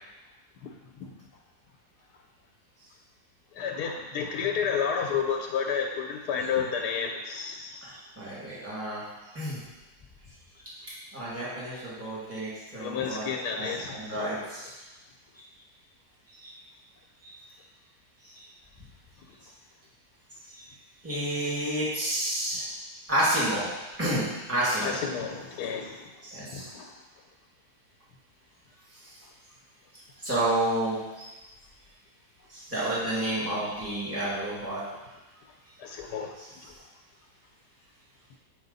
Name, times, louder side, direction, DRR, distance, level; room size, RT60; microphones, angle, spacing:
voice 1, 3.5-8.0 12.8-14.4 24.8-26.1 26.4-27.0 35.8-36.3 36.6-36.7, left 6 dB, 85° left, 1 dB, 1.3 m, -31 dB
voice 2, 7.8-9.0 9.3-9.6 11.1-13.2 13.6-14.7 16.4-16.5 17.2-17.3 18.3-18.4 20.5-20.6 21.0-22.6 23.1-23.7 24.0-25.0 26.2-26.7 30.2-31.3 32.5-34.8, right 1 dB, 10° right, -9 dB, 2.2 m, -30 dB
7.6 x 5.3 x 4.0 m, 1.1 s
omnidirectional pair, 1.7 m